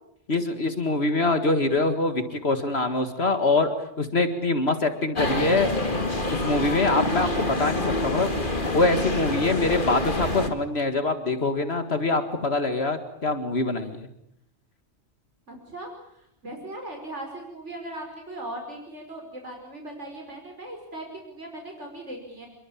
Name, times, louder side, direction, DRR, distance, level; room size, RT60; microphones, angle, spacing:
voice 1, 0.3-3.7 4.0-14.1, left 2 dB, 60° left, 8 dB, 2.1 m, -24 dB
sound 1, 5.2-10.5, left 2 dB, 45° left, 3.0 m, -27 dB
voice 2, 15.5-22.5, right 1 dB, 80° right, 1 dB, 5.6 m, -39 dB
29.5 x 22.5 x 8.6 m, 0.76 s
omnidirectional pair, 1.2 m